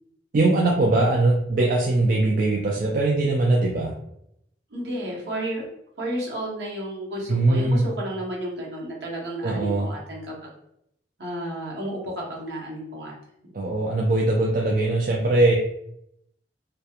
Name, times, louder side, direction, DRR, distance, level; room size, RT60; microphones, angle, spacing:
voice 1, 0.3-4.0 7.3-7.9 9.4-9.9 13.5-15.6, right 2 dB, 50° right, -2 dB, 0.4 m, -21 dB
voice 2, 4.7-5.7 6.0-10.5 11.2-13.1, right 1 dB, 70° right, -3 dB, 0.9 m, -32 dB
2.3 x 2.2 x 2.8 m, 0.75 s
head